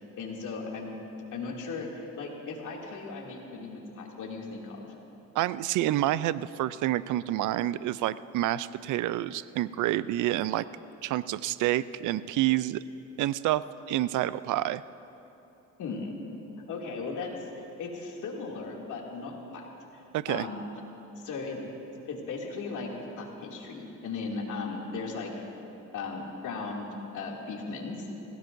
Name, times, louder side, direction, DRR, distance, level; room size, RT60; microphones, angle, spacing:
voice 1, 0.2-1.0 1.3-5.0 15.8-16.2 16.7-19.7 19.9-20.6 21.2-21.6 21.9-22.9 23.2-25.5 25.9-26.9 27.1-28.1, left 4 dB, 80° left, -2 dB, 2.6 m, -37 dB
voice 2, 5.3-10.7 11.0-12.8 13.2-14.8 20.1-20.4, right 14 dB, 80° right, 16 dB, 0.5 m, -28 dB
26.5 x 16.5 x 2.6 m, 3.0 s
cardioid pair, 90°, 30 cm